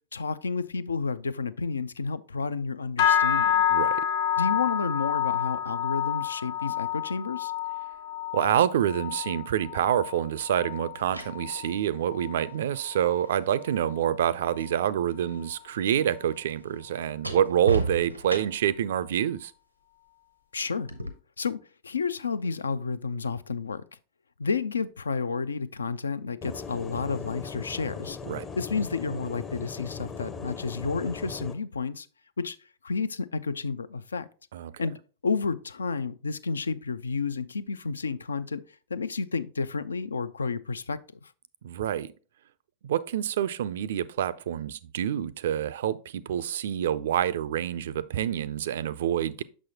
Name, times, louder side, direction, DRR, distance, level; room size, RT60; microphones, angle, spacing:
voice 1, 0.1-3.6 4.4-7.5 20.5-20.9 21.4-21.6 21.8-23.8 24.4-28.2 28.6-32.1 32.4-32.6 32.8-34.3 34.8-35.0 35.2-38.6 38.9-41.3, left 4 dB, 75° left, 0.3 m, -31 dB
sound 1, 3.0-12.5 12.8-13.3 13.7-14.0 14.6-14.7, left 10 dB, 55° left, 0.8 m, -29 dB
voice 2, 3.7-4.0 8.3-19.5 28.3-28.5 34.5-34.7 41.6-42.1 42.8-49.4, right 10 dB, 60° right, 0.3 m, -27 dB
sound 2, 9.7-9.8 10.8-14.8 15.1-18.8 20.9-21.1, right 3 dB, 90° right, 0.7 m, -37 dB
sound 3, 26.4-31.5, left 5 dB, 25° left, 0.6 m, -38 dB
6.2 x 6.1 x 2.8 m
figure-of-eight pair, 90°, 0 cm